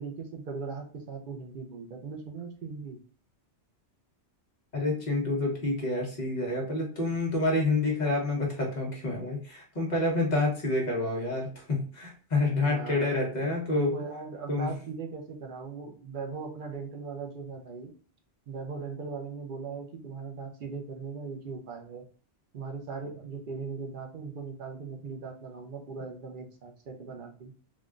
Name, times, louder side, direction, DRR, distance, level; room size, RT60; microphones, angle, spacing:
voice 1, 0.0-3.0 12.6-17.9 18.5-22.0 22.5-27.5, right 4 dB, 55° right, 3 dB, 0.6 m, -39 dB
voice 2, 4.7-13.9 14.5-14.7, left 2 dB, 40° left, -1 dB, 1.1 m, -28 dB
3.7 x 2.2 x 2.4 m, 0.41 s
omnidirectional pair, 1.2 m